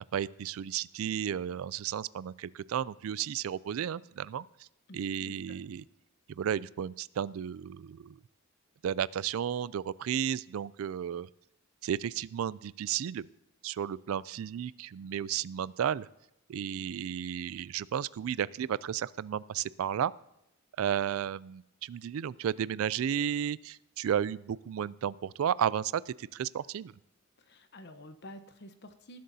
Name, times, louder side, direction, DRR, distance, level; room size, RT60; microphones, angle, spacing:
voice 1, 0.1-4.7 4.9-5.8 6.4-8.2 8.8-11.3 11.8-13.3 13.6-16.1 16.5-20.1 20.8-26.9, right 9 dB, 85° right, 19 dB, 0.3 m, -33 dB
voice 2, 4.9-5.6 27.4-29.2, left 1 dB, 55° left, 9 dB, 0.9 m, -50 dB
19.5 x 11.5 x 2.8 m, 0.85 s
head